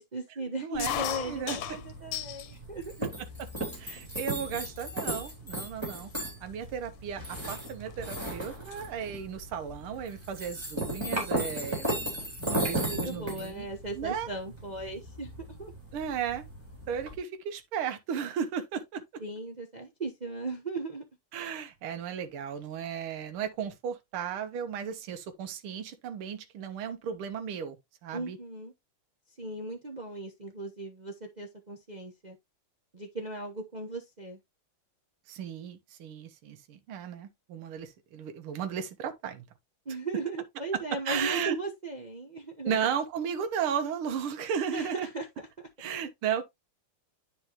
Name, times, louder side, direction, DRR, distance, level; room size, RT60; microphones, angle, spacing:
voice 1, 0.0-3.1 12.4-15.7 19.2-21.0 28.1-28.7 29.4-32.4 32.9-34.4 39.8-42.8 44.7-45.5, right 2 dB, 45° right, 0.5 m, -37 dB
voice 2, 0.6-1.0 1.3-1.8 3.8-6.1 6.4-13.7 14.0-14.3 15.9-16.4 16.9-19.0 21.3-27.8 28.0-28.4 35.3-39.4 41.1-41.6 42.7-45.1 45.8-46.4, right 8 dB, 75° right, 1.9 m, -35 dB
sound 1, 0.7-17.2, right 1 dB, 10° right, 3.5 m, -36 dB
sound 2, 0.8-2.5 3.0-3.6 4.3-4.4 4.6-5.0 5.7-5.8 6.0-8.2 8.5-8.8 10.2-10.4 11.5-11.6 11.8-11.9 12.2-13.1, left 11 dB, 85° left, 1.6 m, -37 dB
10.0 x 4.4 x 2.9 m
omnidirectional pair, 2.4 m